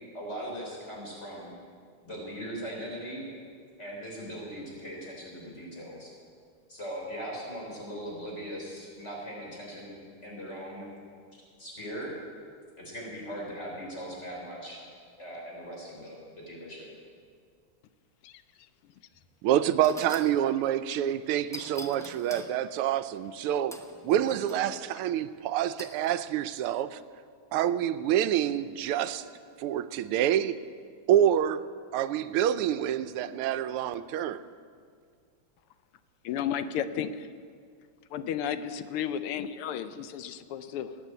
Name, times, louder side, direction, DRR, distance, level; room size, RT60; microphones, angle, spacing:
voice 1, 0.1-1.5 2.0-3.3 3.8-6.1 6.7-10.0 10.2-10.9 11.6-12.2 12.8-14.8 15.2-16.9, equal, 30° left, -2 dB, 4.6 m, -39 dB
sound 1, 19.1-19.3 19.8-20.4 21.5-22.5 23.7-24.6 25.8-26.2, left 1 dB, 5° left, 0.3 m, -44 dB
voice 2, 19.4-23.8 24.0-27.0 27.5-29.3 29.6-30.6 31.1-31.6 31.9-34.4, right 11 dB, 90° right, 12 dB, 1.5 m, -27 dB
voice 3, 36.2-37.3 38.1-41.0, left 9 dB, 90° left, 11 dB, 1.6 m, -33 dB
19.0 x 8.9 x 8.1 m, 2.1 s
omnidirectional pair, 2.4 m